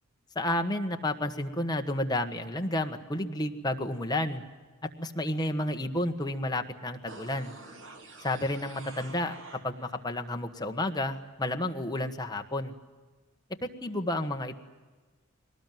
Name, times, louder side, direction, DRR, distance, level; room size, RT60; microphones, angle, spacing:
voice 1, 0.3-4.4 5.0-7.5 8.2-9.3 9.6-12.7 13.8-14.6, left 1 dB, 20° left, 4 dB, 1.4 m, -31 dB
sound 1, 7.1-10.1 10.4-10.5, right 2 dB, 65° right, 3.1 m, -48 dB
22.5 x 19.0 x 9.3 m, 1.3 s
head